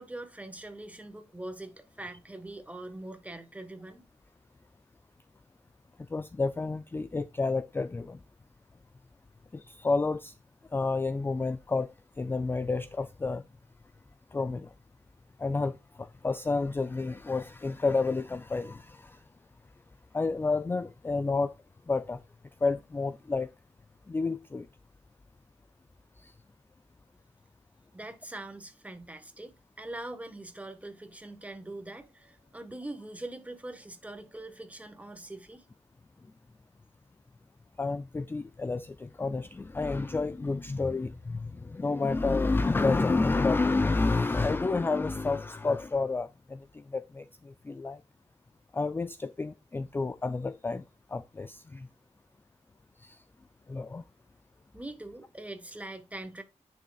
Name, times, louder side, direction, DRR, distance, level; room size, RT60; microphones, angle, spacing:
voice 1, 0.0-4.0 27.9-35.6 54.7-56.4, right 2 dB, 10° right, 1.3 m, -43 dB
voice 2, 6.1-8.2 9.5-10.3 10.7-13.4 14.3-14.7 15.4-19.2 20.1-21.5 21.9-22.2 22.6-23.5 24.1-24.7 26.2-26.3 37.8-48.0 48.7-50.8 51.1-51.9 53.0-53.2 53.7-54.0, left 3 dB, 20° left, 0.3 m, -30 dB
10.0 x 6.4 x 2.3 m
wide cardioid pair, 145°, 12 cm